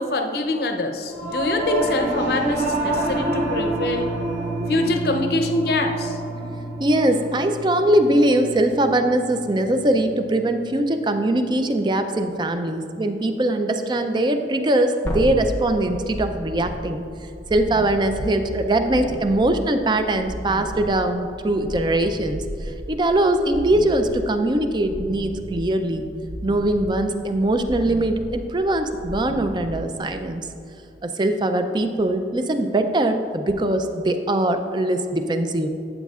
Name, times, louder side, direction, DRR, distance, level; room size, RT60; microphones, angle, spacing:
voice 1, 0.0-4.1 4.7-6.2, left 2 dB, 55° left, 5 dB, 0.7 m, -24 dB
Singing / Musical instrument, 1.1-10.7, right 1 dB, 75° right, 2.1 m, -28 dB
voice 2, 6.8-17.0 17.5-26.1 26.4-30.4 31.0-35.7, right 1 dB, 25° right, 7 dB, 0.4 m, -21 dB
sound 1, 15.1-30.4 33.5-33.6, equal, 15° left, 0.7 m, -34 dB
12.5 x 8.0 x 2.4 m, 2.7 s
head